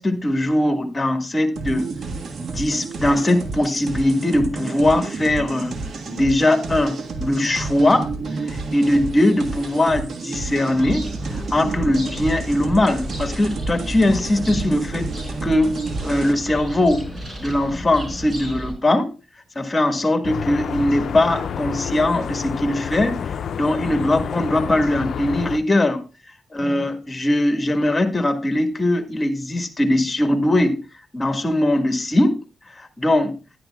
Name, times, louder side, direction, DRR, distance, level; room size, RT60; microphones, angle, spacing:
voice 1, 0.0-1.9 2.5-5.8 6.1-8.1 8.5-15.1 15.4-15.8 16.0-19.1 19.5-23.2 23.5-26.0 26.5-30.8 31.1-32.4 32.8-33.4, left 1 dB, 25° left, 1.6 m, -20 dB
sound 1, 1.6-16.3, right 3 dB, 65° right, 1.6 m, -30 dB
sound 2, 10.8-18.7, right 1 dB, 30° right, 4.8 m, -33 dB
sound 3, 20.2-25.6, left 7 dB, 75° left, 0.4 m, -29 dB
11.0 x 10.5 x 2.3 m
cardioid pair, 75°, 0 cm